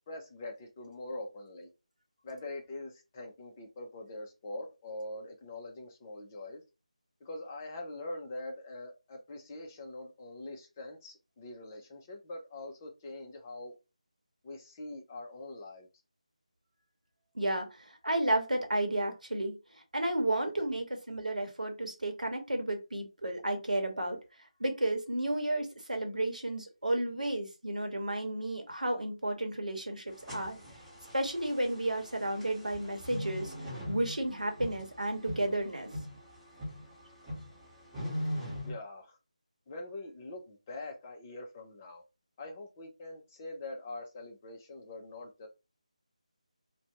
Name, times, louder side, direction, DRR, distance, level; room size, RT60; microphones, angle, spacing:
voice 1, 0.1-1.7 2.2-6.6 7.2-13.7 14.4-15.9 38.6-39.2 39.7-42.0 42.4-45.5, left 2 dB, 20° left, 0.5 m, -43 dB
voice 2, 17.3-17.7 18.0-19.5 19.9-24.2 24.6-30.6 31.1-33.5 33.9-35.9, right 1 dB, 85° right, 0.9 m, -32 dB
sound 1, 30.1-38.7, equal, 5° right, 1.1 m, -41 dB
2.5 x 2.2 x 2.8 m
figure-of-eight pair, 160°, 4 cm